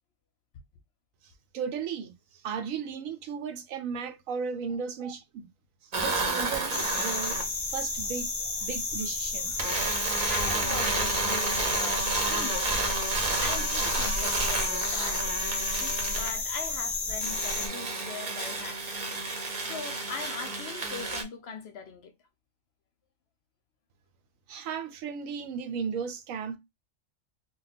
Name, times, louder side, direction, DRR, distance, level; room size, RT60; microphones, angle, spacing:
voice 1, 1.5-2.1 2.4-5.5 6.0-7.4 7.7-8.3 8.6-9.5 24.5-26.6, right 6 dB, 90° right, 1.0 m, -35 dB
sound 1, 5.9-7.5 9.6-16.3 17.2-21.2, right 3 dB, 45° right, 0.8 m, -31 dB
sound 2, 6.7-17.7, left 3 dB, 35° left, 0.5 m, -32 dB
voice 2, 10.3-18.8 19.6-22.1, left 5 dB, 65° left, 0.8 m, -41 dB
2.3 x 2.2 x 3.9 m
omnidirectional pair, 1.4 m